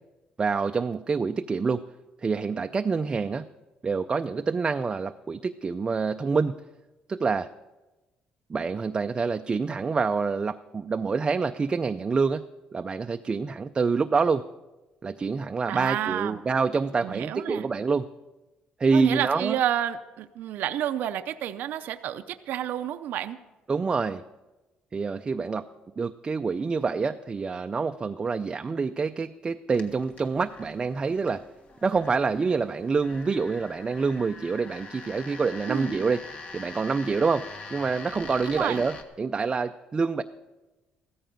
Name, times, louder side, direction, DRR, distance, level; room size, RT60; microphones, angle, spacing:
voice 1, 0.4-1.8 2.2-3.5 3.8-6.6 7.1-7.5 8.5-12.4 12.7-14.4 15.0-18.1 18.8-19.6 23.7-24.2 24.9-25.6 26.0-31.4 31.8-40.2, right 4 dB, 25° right, 7 dB, 0.4 m, -27 dB
voice 2, 15.7-16.4 17.0-17.7 18.9-23.4 35.7-35.9 38.4-38.8, right 11 dB, 75° right, 10 dB, 0.5 m, -30 dB
sound 1, 29.7-39.0, left 4 dB, 45° left, 1.5 m, -44 dB
15.0 x 13.5 x 5.2 m, 1.1 s
cardioid pair, 115°, 3 cm